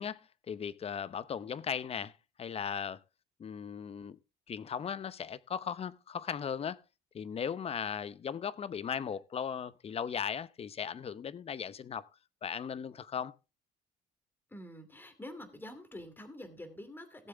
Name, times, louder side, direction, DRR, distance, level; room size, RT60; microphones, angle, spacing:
voice 1, 0.0-3.0 3.4-4.2 4.5-6.8 7.1-12.1 12.4-13.4, left 7 dB, 35° left, 0.8 m, -37 dB
voice 2, 14.5-17.3, left 1 dB, 10° left, 2.6 m, -47 dB
17.5 x 7.4 x 3.5 m
cardioid pair, 110°, 17 cm